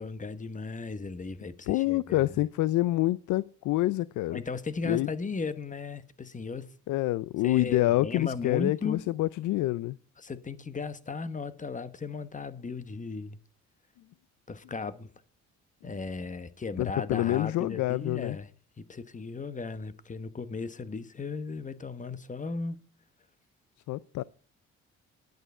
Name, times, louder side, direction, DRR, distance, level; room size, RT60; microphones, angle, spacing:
voice 1, 0.0-2.3 4.3-6.7 7.4-9.0 10.2-13.4 14.5-15.1 15.8-18.5 18.8-22.8, left 4 dB, 25° left, 1.1 m, -36 dB
voice 2, 1.7-4.4 4.8-5.1 6.9-10.0 16.8-18.4 23.9-24.2, left 16 dB, 75° left, 0.5 m, -27 dB
11.0 x 9.4 x 5.5 m
cardioid pair, 90°, 30 cm